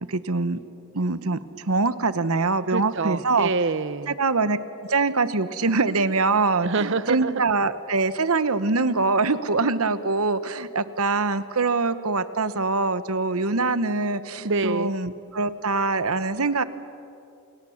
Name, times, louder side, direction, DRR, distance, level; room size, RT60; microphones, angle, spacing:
voice 1, 0.1-0.6 0.9-3.5 4.1-4.6 4.9-16.6, right 3 dB, 80° right, 13 dB, 1.1 m, -24 dB
voice 2, 2.7-4.1 6.6-7.4 14.4-14.9, right 3 dB, 55° right, 16 dB, 0.8 m, -26 dB
29.0 x 28.0 x 7.2 m, 2.7 s
head